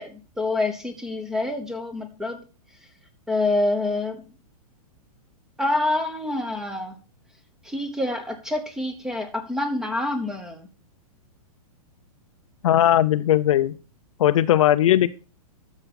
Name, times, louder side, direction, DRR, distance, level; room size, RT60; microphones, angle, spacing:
voice 1, 0.0-2.4 3.3-4.2 5.6-7.0 7.6-10.7, left 2 dB, 5° right, 8 dB, 0.9 m, -27 dB
voice 2, 12.6-13.8 14.2-15.1, left 12 dB, 55° left, 13 dB, 0.6 m, -18 dB
12.0 x 7.0 x 4.2 m, 0.35 s
hypercardioid pair, 165°, 19 cm